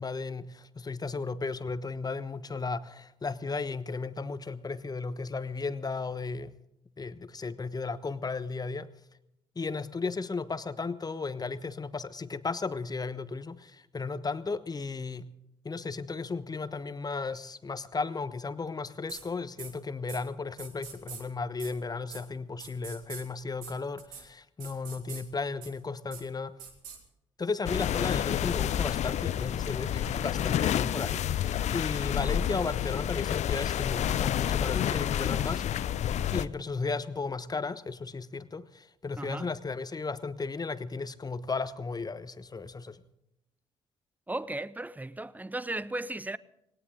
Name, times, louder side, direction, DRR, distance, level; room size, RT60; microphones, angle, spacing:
voice 1, 0.0-6.5 7.0-8.9 9.6-15.3 15.6-26.6 27.4-35.9 36.3-43.0, left 4 dB, 30° left, 1.1 m, -35 dB
sound 1, 19.1-19.2 19.6-19.7 20.1-20.2 20.6-21.2 21.6-21.7 22.1-22.2 22.6-23.2 23.6-23.7 24.0-24.2 24.6-25.2 25.6-25.7 26.1-26.2 26.6-27.0, right 7 dB, 75° right, 2.2 m, -43 dB
sound 2, 27.7-36.5, left 10 dB, 55° left, 0.6 m, -29 dB
voice 2, 39.2-39.5 44.3-46.4, right 2 dB, 10° right, 0.7 m, -35 dB
19.5 x 18.0 x 3.8 m
hypercardioid pair, 45°, 14 cm